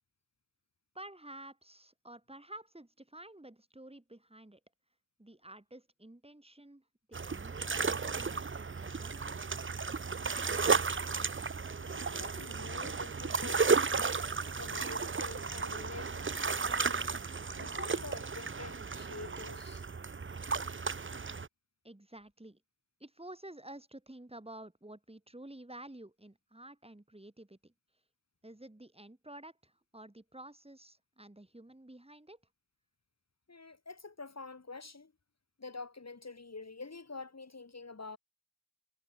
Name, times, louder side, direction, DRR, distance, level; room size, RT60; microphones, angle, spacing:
voice 1, 0.9-4.6 5.2-9.5 21.8-22.6 23.0-27.7 28.4-32.4, right 1 dB, 15° right, 6.1 m, -51 dB
sound 1, 7.1-21.5, right 4 dB, 30° right, 0.9 m, -34 dB
voice 2, 11.8-14.1 14.6-17.1 17.5-19.8 33.5-35.1 35.6-38.2, left 3 dB, 40° left, 3.6 m, -47 dB
wide cardioid pair, 85°, 38 cm